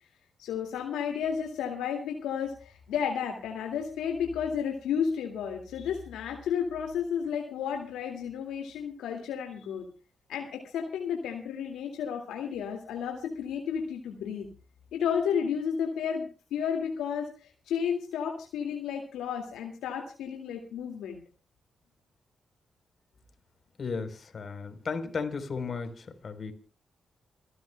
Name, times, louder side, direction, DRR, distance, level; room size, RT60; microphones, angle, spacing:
voice 1, 0.4-9.9 10.3-14.5 14.9-21.2, left 7 dB, 85° left, 2 dB, 2.2 m, -32 dB
voice 2, 23.8-26.5, left 5 dB, 55° left, 8 dB, 3.9 m, -35 dB
29.0 x 12.5 x 2.3 m, 0.35 s
supercardioid pair, 50°, 0 cm